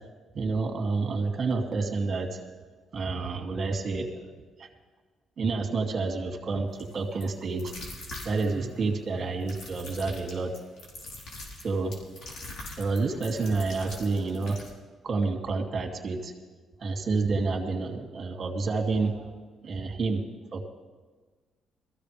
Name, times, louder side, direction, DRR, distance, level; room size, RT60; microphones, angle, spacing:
voice 1, 0.3-2.3 2.9-4.3 4.6-4.7 5.4-7.7 8.2-10.5 11.6-12.0 12.8-14.6 15.0-16.3 16.8-19.4 19.6-20.2 20.5-20.7, right 3 dB, 45° right, 3 dB, 2.6 m, -29 dB
sound 1, 6.8-6.9 7.2-7.3 7.6-8.8 9.4-14.7, left 2 dB, 70° left, 4.4 m, -43 dB
21.5 x 14.5 x 3.4 m, 1.4 s
cardioid pair, 90°, 0 cm